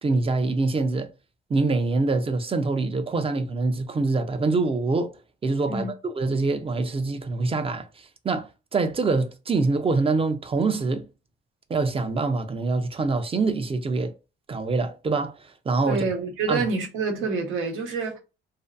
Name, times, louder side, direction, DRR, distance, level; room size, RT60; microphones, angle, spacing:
voice 1, 0.0-1.1 1.5-5.1 5.4-11.1 11.7-14.1 14.5-16.0 16.5-16.6, right 3 dB, 30° right, 0.5 m, -25 dB
voice 2, 15.9-18.2, right 4 dB, 85° right, 1.0 m, -27 dB
2.6 x 2.4 x 2.3 m
cardioid pair, 90°, 20 cm